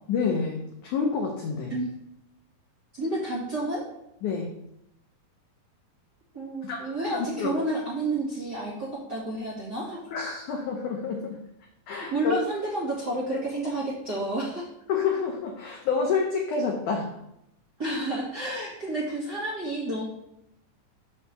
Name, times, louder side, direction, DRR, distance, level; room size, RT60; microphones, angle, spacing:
voice 1, 0.1-1.7 4.2-4.6 6.6-6.8 7.4-7.6 10.1-11.4 11.9-12.4 14.9-17.2, left 5 dB, 80° left, 1 dB, 1.8 m, -28 dB
voice 2, 2.9-3.8 6.3-10.0 11.9-14.6 17.8-20.0, right 1 dB, 35° right, -7 dB, 1.7 m, -30 dB
6.3 x 4.4 x 6.6 m, 0.82 s
omnidirectional pair, 4.6 m